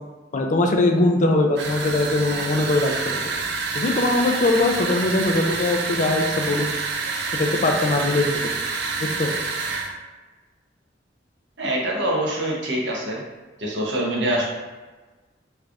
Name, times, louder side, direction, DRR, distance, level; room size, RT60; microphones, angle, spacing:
voice 1, 0.3-3.2 3.7-6.7 7.4-8.5 9.0-9.3, left 2 dB, 45° left, 3 dB, 0.4 m, -21 dB
sound 1, 1.6-9.9, right 4 dB, 65° right, 0.4 m, -27 dB
voice 2, 11.6-13.2 13.6-14.5, right 1 dB, 80° right, -3 dB, 0.8 m, -24 dB
3.3 x 2.5 x 3.4 m, 1.3 s
head